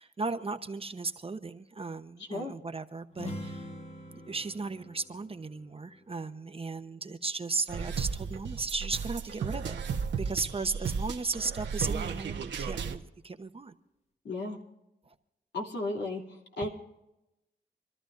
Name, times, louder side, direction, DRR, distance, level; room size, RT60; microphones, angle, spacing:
voice 1, 0.0-3.7 4.3-9.8 10.2-13.7 15.0-15.1, right 3 dB, 30° right, 9 dB, 0.9 m, -36 dB
voice 2, 2.2-2.5 14.2-14.6 15.5-16.7, left 2 dB, 75° left, 0 dB, 2.9 m, -34 dB
sound 1, 3.1-6.8, equal, 35° left, 1.8 m, -44 dB
sound 2, 7.7-13.0, right 6 dB, 85° right, 1.2 m, -34 dB
26.5 x 13.0 x 2.6 m, 0.92 s
cardioid pair, 80°, 18 cm